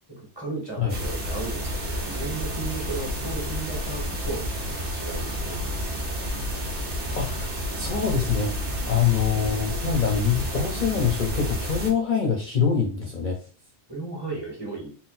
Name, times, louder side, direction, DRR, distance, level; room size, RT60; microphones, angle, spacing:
voice 1, 0.1-4.4 4.9-5.6 13.9-14.9, right 3 dB, 20° right, -2 dB, 1.6 m, -35 dB
sound 1, 0.9-11.9, equal, 55° right, 1.2 m, -30 dB
voice 2, 7.2-8.5 8.9-13.4, left 6 dB, 50° left, 0 dB, 0.8 m, -24 dB
3.9 x 2.1 x 4.2 m, 0.40 s
omnidirectional pair, 1.2 m